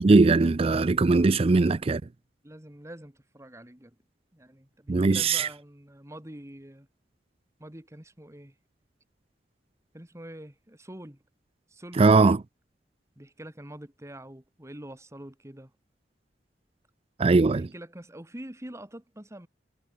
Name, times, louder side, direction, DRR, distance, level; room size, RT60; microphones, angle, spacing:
voice 1, 0.0-2.0 4.9-5.5 12.0-12.4 17.2-17.7, right 3 dB, 35° right, 0.4 m, -20 dB
voice 2, 2.4-4.0 4.3-6.9 7.6-8.5 9.9-11.2 11.7-12.4 13.2-15.7 17.4-19.5, right 1 dB, 15° right, 2.0 m, -45 dB
head